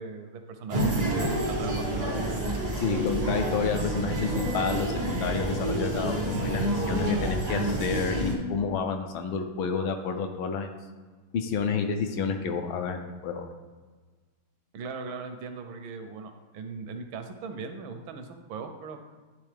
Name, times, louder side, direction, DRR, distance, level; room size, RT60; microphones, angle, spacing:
voice 1, 0.0-2.1 14.7-19.0, right 5 dB, 75° right, 6 dB, 1.3 m, -39 dB
sound 1, 0.7-8.4, right 1 dB, 40° right, 0.5 m, -28 dB
voice 2, 2.8-10.7 11.3-13.5, left 6 dB, 75° left, 5 dB, 1.4 m, -30 dB
10.5 x 3.5 x 3.3 m, 1.4 s
omnidirectional pair, 2.4 m